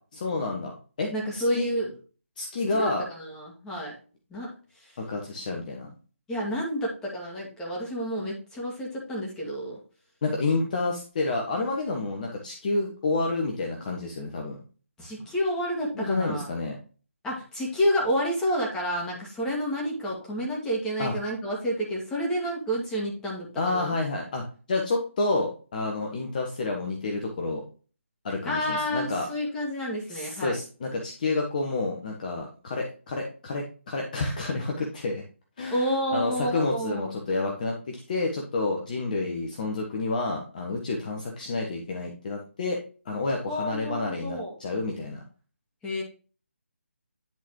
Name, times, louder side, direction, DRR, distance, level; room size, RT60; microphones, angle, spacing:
voice 1, 0.1-1.7 2.4-3.1 5.0-5.9 10.2-14.6 15.9-16.8 21.0-21.1 23.6-27.6 28.2-29.3 30.1-35.2 35.6-42.8 43.0-45.2, left 3 dB, 40° left, 1 dB, 1.3 m, -29 dB
voice 2, 1.1-1.9 2.8-4.0 4.3-4.5 4.8-4.9 6.3-9.8 15.0-16.5 17.2-24.0 28.4-30.6 35.7-37.1 43.5-44.6 45.8-46.0, equal, 10° left, -3 dB, 2.0 m, -29 dB
10.5 x 4.1 x 3.1 m, 0.37 s
figure-of-eight pair, 150°, 7 cm